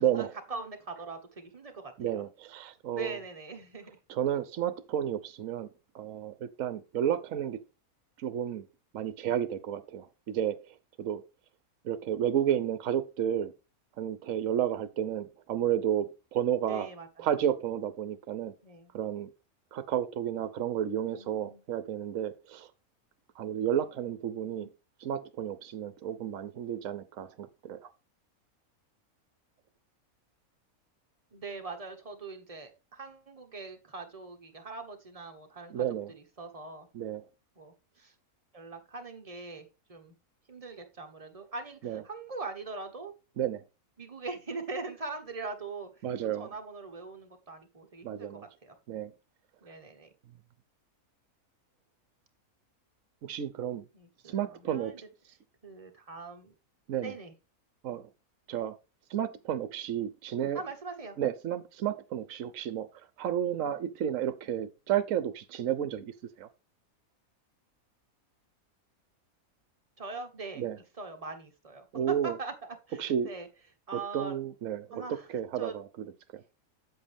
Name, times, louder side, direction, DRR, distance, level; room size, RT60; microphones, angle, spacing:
voice 1, 0.0-2.2 2.9-4.0 16.6-17.3 18.6-18.9 21.0-21.6 24.6-24.7 31.3-36.9 37.6-38.1 38.5-40.1 40.5-43.1 44.0-48.3 48.6-48.7 49.6-50.1 53.9-55.0 55.6-56.5 57.0-57.3 60.5-61.2 70.0-70.6 71.0-72.5 72.9-73.5 73.9-74.4 74.9-75.3 75.6-75.8, right 3 dB, 25° right, 1.3 m, -42 dB
voice 2, 2.0-3.1 4.1-5.7 5.9-7.6 8.2-8.7 8.9-11.2 11.8-13.5 14.0-16.9 17.2-18.5 18.9-19.3 19.7-22.7 23.4-24.7 25.0-27.9 35.7-36.1 36.9-37.2 41.8-42.0 43.4-43.6 46.0-46.5 48.0-48.4 48.9-49.1 53.2-53.9 54.2-54.9 56.9-57.1 57.8-58.1 58.5-58.8 59.1-60.6 61.2-66.5 70.6-70.8 71.9-72.4 73.0-73.3 73.9-75.0 75.3-75.9 76.3-76.4, right 10 dB, 65° right, 1.1 m, -32 dB
8.3 x 7.7 x 3.5 m
omnidirectional pair, 1.5 m